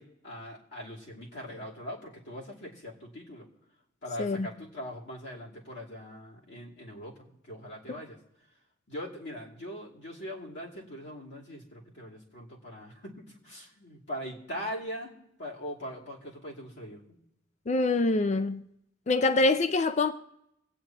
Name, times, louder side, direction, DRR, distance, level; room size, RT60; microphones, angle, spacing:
voice 1, 0.0-3.5 4.0-8.2 8.9-17.2, equal, 60° left, 2.7 m, -41 dB
voice 2, 17.7-18.6 19.1-20.1, left 2 dB, 35° left, 0.4 m, -25 dB
26.5 x 9.0 x 2.9 m
head